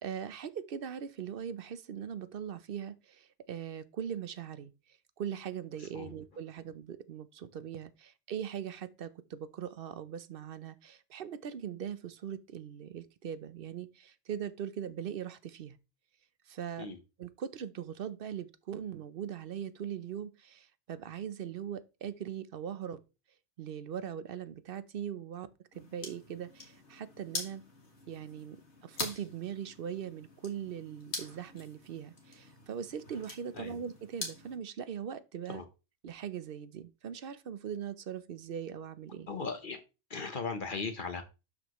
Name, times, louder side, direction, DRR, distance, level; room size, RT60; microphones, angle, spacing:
voice 1, 0.0-4.7 5.2-15.8 16.5-23.0 23.6-25.5 25.7-27.6 28.1-28.6 28.8-35.6 36.0-39.3, right 8 dB, 55° right, 0.8 m, -40 dB
voice 2, 5.8-6.1 16.8-17.0 33.5-33.8 35.5-35.6 39.3-39.8 40.1-41.2, left 4 dB, 45° left, 1.1 m, -38 dB
sound 1, 25.7-34.6, left 3 dB, 70° left, 2.2 m, -44 dB
12.0 x 5.1 x 3.0 m
omnidirectional pair, 1.2 m